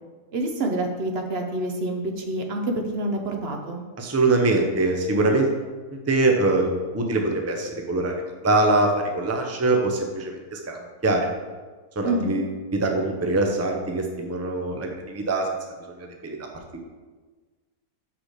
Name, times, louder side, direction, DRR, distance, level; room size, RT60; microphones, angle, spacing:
voice 1, 0.3-3.8 12.0-12.4, right 1 dB, 50° right, 3 dB, 0.9 m, -27 dB
voice 2, 4.0-5.6 6.1-8.1 8.4-11.3 12.0-15.4 16.0-16.4, right 2 dB, 15° right, 2 dB, 0.5 m, -23 dB
6.0 x 4.9 x 6.6 m, 1.4 s
omnidirectional pair, 1.7 m